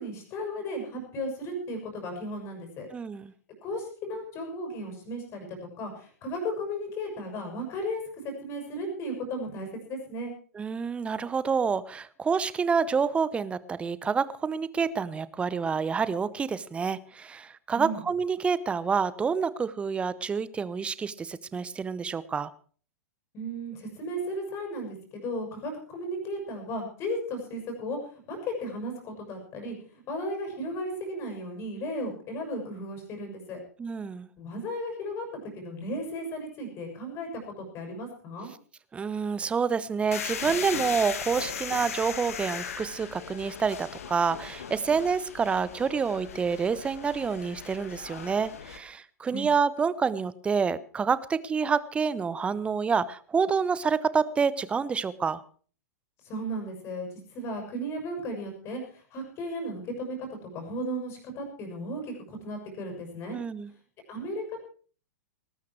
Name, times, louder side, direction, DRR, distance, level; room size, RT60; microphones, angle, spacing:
voice 1, 0.0-2.9 3.6-8.0 8.4-10.3 17.7-18.0 23.3-28.0 28.3-33.6 34.4-38.5 49.3-49.5 56.2-57.1 57.3-60.2 60.5-63.4 64.1-64.6, equal, 30° left, 4 dB, 6.4 m, -35 dB
voice 2, 2.9-3.3 10.5-22.5 33.8-34.3 38.9-55.4 63.3-63.7, right 5 dB, 15° right, 19 dB, 0.8 m, -28 dB
sound 1, 40.1-48.8, left 7 dB, 60° left, 2.2 m, -38 dB
19.5 x 12.5 x 4.7 m, 0.42 s
figure-of-eight pair, 100°, 9 cm